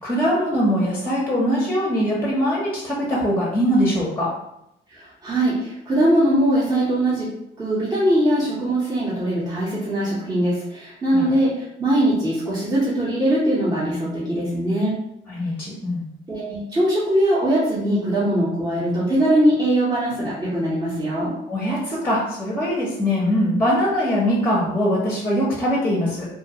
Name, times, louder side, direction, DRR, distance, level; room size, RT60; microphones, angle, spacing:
voice 1, 0.0-4.4 11.1-11.3 15.3-16.0 21.5-26.3, equal, 10° left, -5 dB, 0.7 m, -22 dB
voice 2, 4.9-15.0 16.3-21.4, right 1 dB, 20° right, -8 dB, 0.8 m, -21 dB
2.4 x 2.1 x 2.7 m, 0.81 s
cardioid pair, 90°, 20 cm